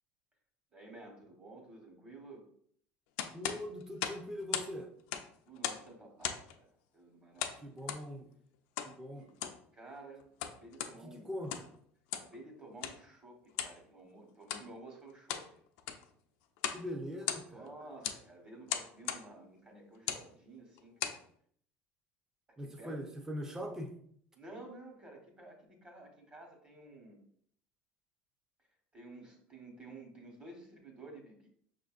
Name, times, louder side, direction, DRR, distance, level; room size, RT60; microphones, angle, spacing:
voice 1, 0.7-2.4 5.5-7.9 9.0-9.3 9.7-11.3 12.1-15.6 17.5-21.2 22.8-23.0 24.3-27.2 28.9-31.5, right 2 dB, 25° right, 2 dB, 1.2 m, -52 dB
sound 1, 3.2-4.7 5.0-5.9 6.2-6.6 7.4-8.0 8.8-8.9 9.3-9.6 10.2-10.9 11.4-11.7 12.1-12.3 12.8-13.0 13.5-13.8 14.4-14.7 15.1-15.5 15.8-16.1 16.6-16.8 17.1-17.7 18.0-18.2 18.7-19.2 19.9-20.3 20.8-21.2, left 10 dB, 85° left, 0.4 m, -37 dB
voice 2, 3.3-4.9 7.6-8.3 8.8-9.3 10.9-11.7 16.7-17.7 22.6-23.9, equal, 10° right, 2 dB, 0.5 m, -42 dB
5.7 x 2.5 x 2.4 m, 0.63 s
cardioid pair, 125°, 5 cm